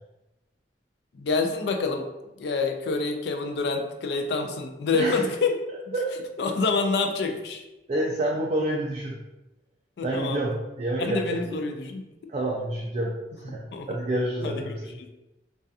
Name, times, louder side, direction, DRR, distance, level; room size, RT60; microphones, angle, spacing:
voice 1, 1.1-2.1 2.4-5.5 5.9-6.0 6.4-7.6 10.0-10.4 11.0-12.1 13.7-14.0 14.4-15.1, left 4 dB, 65° left, 5 dB, 0.3 m, -27 dB
voice 2, 4.9-5.2 5.9-6.1 7.9-9.2 10.0-11.4 12.3-14.8, right 1 dB, 35° right, -3 dB, 0.3 m, -28 dB
2.3 x 2.3 x 2.6 m, 0.98 s
head